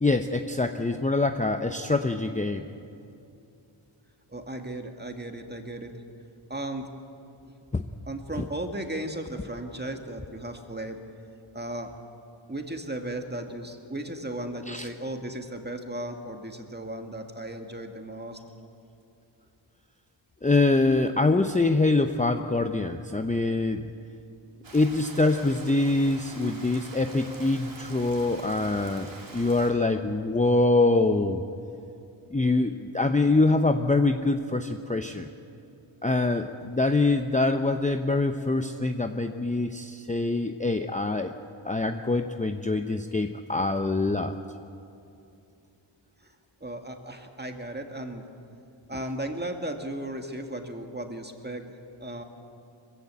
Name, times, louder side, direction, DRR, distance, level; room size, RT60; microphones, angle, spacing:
voice 1, 0.0-2.6 7.7-7.8 14.7-14.9 20.4-23.9 24.7-29.1 29.3-31.4 32.3-35.3 36.0-41.3 41.6-44.3, left 2 dB, 15° left, 6 dB, 0.7 m, -24 dB
voice 2, 4.3-6.0 6.5-6.9 8.1-11.0 11.5-11.9 12.5-18.4 46.2-46.4 46.6-48.3 48.9-51.7 52.0-52.2, right 1 dB, 20° right, 4 dB, 2.0 m, -35 dB
Rain, 24.6-29.7, right 3 dB, 65° right, 3.1 m, -44 dB
21.5 x 15.0 x 8.3 m, 2.6 s
wide cardioid pair, 65°, 48 cm